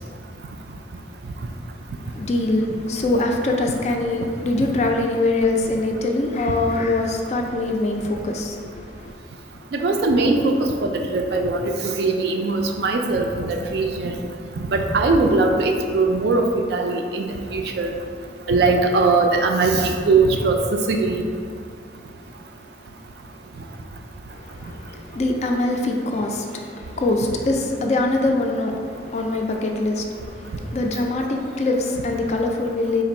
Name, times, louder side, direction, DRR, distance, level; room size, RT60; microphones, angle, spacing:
voice 1, 2.1-9.1 24.3-33.0, left 2 dB, 35° left, 2 dB, 0.3 m, -23 dB
voice 2, 9.7-14.1 14.6-16.4 16.7-17.9 18.5-21.2, right 3 dB, 60° right, 3 dB, 0.4 m, -20 dB
3.7 x 2.5 x 4.2 m, 2.3 s
head